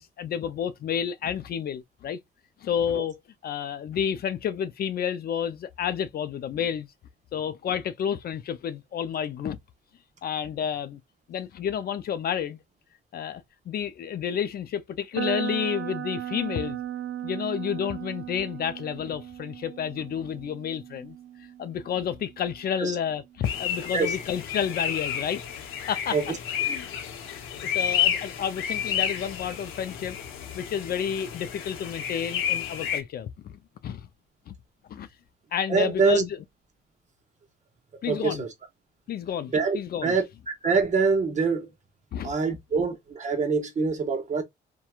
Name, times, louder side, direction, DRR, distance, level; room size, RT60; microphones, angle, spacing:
voice 1, 0.0-2.2 2.6-6.9 7.3-9.6 10.2-11.0 11.3-12.6 13.1-16.8 17.2-21.2 21.6-25.4 25.9-26.2 26.7-26.9 27.6-30.2 30.5-34.1 34.5-34.6 34.9-35.1 35.5-36.4 38.0-38.4 39.1-40.2 42.1-42.3, left 8 dB, 50° left, 0.4 m, -30 dB
sound 1, 15.1-23.1, right 10 dB, 80° right, 0.5 m, -37 dB
sound 2, 23.4-33.0, left 9 dB, 90° left, 0.7 m, -31 dB
voice 2, 35.7-36.2 38.1-38.5 39.5-39.8 40.0-41.7 42.2-44.4, right 4 dB, 35° right, 0.7 m, -24 dB
2.9 x 2.2 x 2.3 m
cardioid pair, 90°, 20 cm